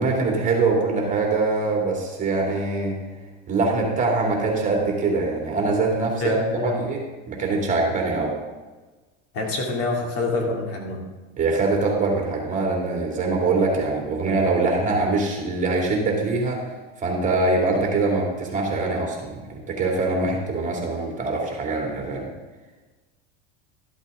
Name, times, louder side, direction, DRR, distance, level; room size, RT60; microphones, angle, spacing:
voice 1, 0.0-3.0 3.5-6.4 6.6-7.0 7.3-8.4 11.4-16.7 17.0-22.3, right 3 dB, 25° right, -1 dB, 2.6 m, -23 dB
voice 2, 6.2-6.9 9.3-11.0, left 3 dB, 55° left, 0 dB, 2.6 m, -26 dB
13.0 x 8.1 x 3.7 m, 1.2 s
supercardioid pair, 130°, 30 cm